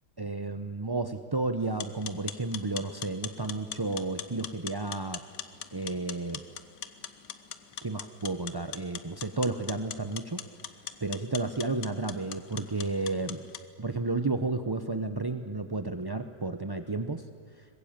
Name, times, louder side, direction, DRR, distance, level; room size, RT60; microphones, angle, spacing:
voice 1, 0.2-5.2 5.7-6.4 7.8-10.4 11.0-13.4 13.8-17.2, right 3 dB, 35° right, 8 dB, 0.4 m, -32 dB
sound 1, 1.6-13.6, left 9 dB, 80° left, 1.6 m, -42 dB
24.0 x 20.5 x 8.8 m, 2.3 s
omnidirectional pair, 1.9 m